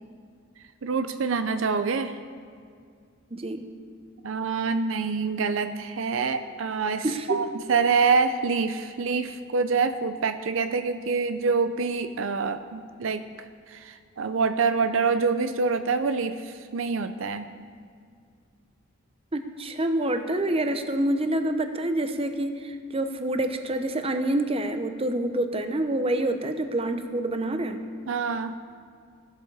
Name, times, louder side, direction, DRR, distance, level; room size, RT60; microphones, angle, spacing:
voice 1, 0.8-2.2 4.2-13.2 13.7-17.5 28.1-28.6, right 4 dB, 70° right, 10 dB, 0.5 m, -26 dB
voice 2, 3.3-3.7 7.0-7.5 19.3-27.8, right 1 dB, 30° right, 7 dB, 0.8 m, -27 dB
15.5 x 12.0 x 4.8 m, 2.2 s
head